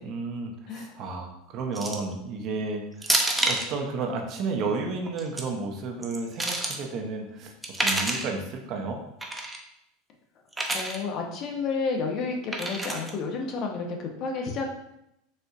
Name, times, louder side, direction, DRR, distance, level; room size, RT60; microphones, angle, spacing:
voice 1, 0.0-3.1 3.4-9.0, right 4 dB, 50° right, 2 dB, 0.6 m, -32 dB
sound 1, 1.7-2.1 3.0-3.7 5.0-5.4 6.0-6.8 7.6-8.3 9.2-9.6 10.5-11.0 12.5-13.1, right 2 dB, 10° right, 0.5 m, -28 dB
voice 2, 10.7-14.7, left 4 dB, 50° left, 2 dB, 0.7 m, -31 dB
4.1 x 2.6 x 2.4 m, 0.82 s
hypercardioid pair, 95°, 0 cm